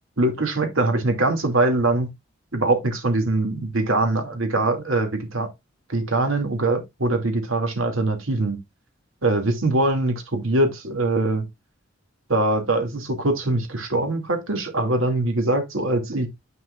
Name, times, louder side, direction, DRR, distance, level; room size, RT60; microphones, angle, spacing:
voice 1, 0.2-2.1 2.5-5.5 5.9-8.6 9.2-11.4 12.3-16.3, right 2 dB, 80° right, 2.5 m, -22 dB
9.3 x 6.2 x 2.5 m
head